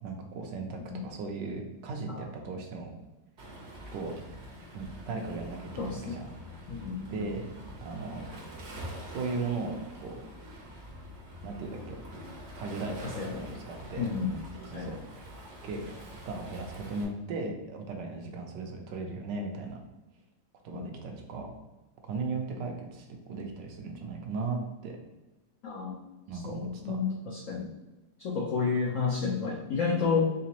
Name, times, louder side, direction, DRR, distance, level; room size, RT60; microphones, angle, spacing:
voice 1, 0.0-2.9 3.9-4.1 4.7-6.3 7.1-7.5 7.8-8.3 9.1-10.5 11.4-12.1 12.6-14.2 14.6-15.3 15.6-19.8 20.6-21.5 22.0-25.0 26.3-27.0, right 3 dB, 75° right, 3 dB, 1.2 m, -37 dB
Waves surf, 3.4-17.0, equal, 55° right, 0.8 m, -45 dB
voice 2, 5.8-6.2 6.7-7.0 13.2-13.4 14.0-14.4 14.7-14.9 20.7-20.8 25.6-26.0 26.4-27.7 28.2-30.2, left 5 dB, 80° left, -2 dB, 0.7 m, -30 dB
3.9 x 3.4 x 2.8 m, 1.1 s
omnidirectional pair, 2.1 m